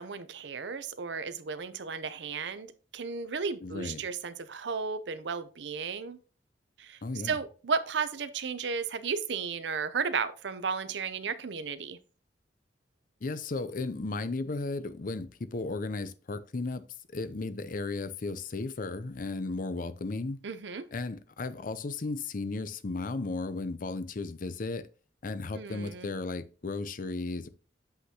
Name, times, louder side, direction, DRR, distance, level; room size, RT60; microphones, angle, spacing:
voice 1, 0.0-6.2 6.8-7.0 7.2-12.0 20.4-20.9 25.5-26.1, right 5 dB, 70° right, 0.6 m, -34 dB
voice 2, 3.6-4.0 7.0-7.4 13.2-16.8 17.1-20.4 20.9-24.9 25.2-27.5, left 3 dB, 50° left, 0.6 m, -35 dB
7.8 x 5.7 x 2.9 m
head